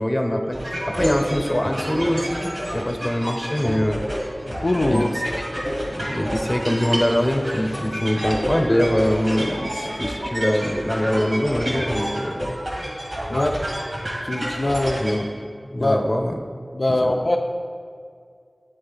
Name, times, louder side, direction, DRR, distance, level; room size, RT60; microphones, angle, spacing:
voice 1, 0.0-4.0 4.9-5.4 6.0-12.6 15.0-15.3 15.6-16.3 17.0-17.1, equal, 25° left, 3 dB, 0.9 m, -23 dB
sound 1, 0.5-15.2, equal, 85° right, 1.9 m, -29 dB
voice 2, 4.5-5.1 13.3-13.6 14.2-15.0 15.8-16.0 16.7-17.4, left 1 dB, 65° left, 0 dB, 0.4 m, -22 dB
10.5 x 3.8 x 3.9 m, 2.1 s
wide cardioid pair, 45°, 0 cm